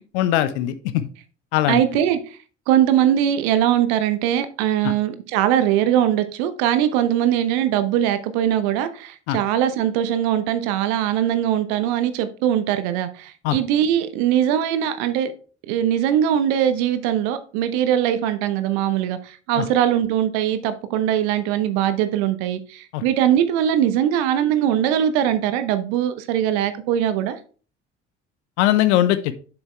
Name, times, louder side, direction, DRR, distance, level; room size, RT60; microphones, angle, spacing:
voice 1, 0.1-1.1 1.5-1.8 4.8-4.9 9.3-9.4 13.4-13.6 19.6-19.7 22.9-23.0 28.6-29.3, left 13 dB, 75° left, 0.8 m, -20 dB
voice 2, 1.7-2.2 2.7-15.3 15.7-27.4, right 10 dB, 70° right, 1.0 m, -21 dB
7.3 x 6.1 x 3.4 m
hypercardioid pair, 55°, 35 cm